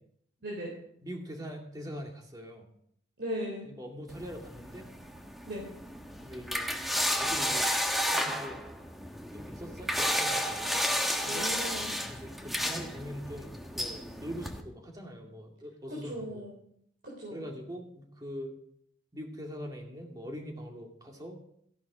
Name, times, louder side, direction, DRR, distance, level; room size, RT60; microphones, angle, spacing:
voice 1, 0.4-0.7 3.2-3.7 5.5-5.7 11.2-11.9 15.9-16.5 17.0-17.5, equal, 60° right, -3 dB, 3.7 m, -37 dB
voice 2, 1.0-2.6 3.7-4.8 6.2-6.7 7.2-7.7 8.1-8.7 9.0-10.7 11.2-11.4 12.1-16.5 17.3-18.5 19.1-21.4, equal, 20° right, 2 dB, 2.3 m, -43 dB
sound 1, 4.1-14.6, equal, ahead, 1.1 m, -32 dB
14.5 x 11.0 x 4.9 m, 0.69 s
head